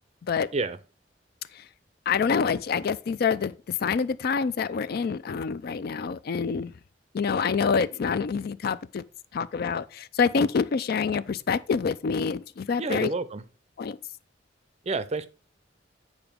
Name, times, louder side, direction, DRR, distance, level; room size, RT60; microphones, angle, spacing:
voice 1, 2.1-3.5 3.8-6.7 7.1-9.0 9.3-13.1 13.8-14.0, left 5 dB, 55° left, 0.4 m, -26 dB
voice 2, 12.8-13.4 14.8-15.3, right 3 dB, 35° right, 0.5 m, -29 dB
8.9 x 4.8 x 3.6 m
head